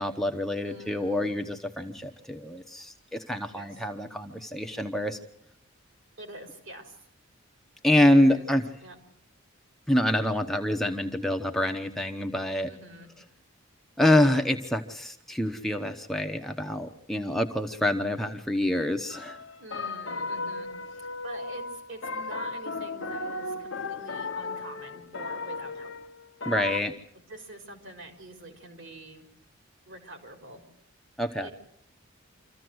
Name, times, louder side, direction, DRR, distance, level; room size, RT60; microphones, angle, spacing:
voice 1, 0.0-5.2 7.8-8.6 9.9-12.7 14.0-19.4 26.5-26.9 31.2-31.5, left 1 dB, ahead, 4 dB, 0.9 m, -26 dB
voice 2, 0.6-1.3 3.5-3.8 6.2-7.1 8.2-8.5 8.8-9.0 12.6-13.1 19.6-25.9 27.3-29.3 29.9-30.6 31.4-31.5, right 2 dB, 60° right, 5 dB, 4.4 m, -45 dB
sound 1, 19.1-26.8, left 3 dB, 60° left, 1.0 m, -35 dB
26.5 x 14.5 x 7.8 m, 0.73 s
head